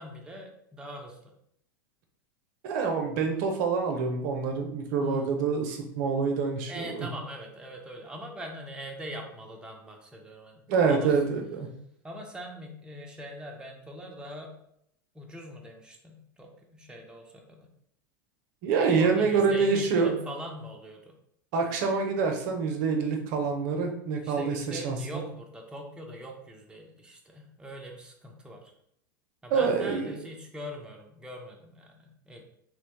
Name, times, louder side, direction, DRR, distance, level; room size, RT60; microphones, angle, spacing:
voice 1, 0.0-1.3 5.0-5.3 6.7-11.1 12.0-14.5 15.1-17.7 18.9-21.1 24.2-28.7 29.4-32.4, equal, 10° right, 1 dB, 0.5 m, -42 dB
voice 2, 2.6-7.1 10.7-11.7 18.6-20.1 21.5-25.2 29.5-30.2, right 5 dB, 60° right, 3 dB, 0.6 m, -26 dB
3.0 x 2.1 x 2.9 m, 0.72 s
hypercardioid pair, 100°, 11 cm